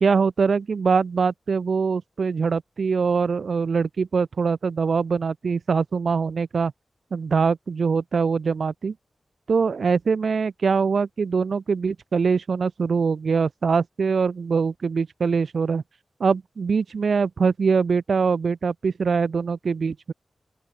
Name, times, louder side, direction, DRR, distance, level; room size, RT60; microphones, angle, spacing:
voice 1, 0.0-6.7 7.1-8.9 9.5-15.8 16.2-20.1, right 5 dB, 70° right, 0.8 m, -23 dB
open air
wide cardioid pair, 120°, 0 cm